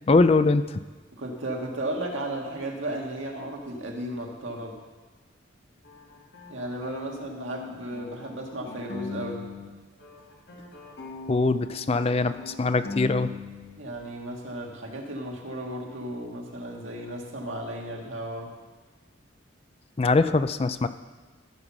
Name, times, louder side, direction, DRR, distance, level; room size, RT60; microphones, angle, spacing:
voice 1, 0.1-0.8 11.3-13.3 20.0-20.9, left 3 dB, 30° left, 12 dB, 0.4 m, -22 dB
voice 2, 1.1-4.8 6.5-9.5 13.8-18.6, right 1 dB, 80° right, 0 dB, 1.8 m, -34 dB
sound 1, 5.8-9.7 10.0-13.8, left 4 dB, 55° left, 1.7 m, -40 dB
15.0 x 5.7 x 6.0 m, 1.3 s
head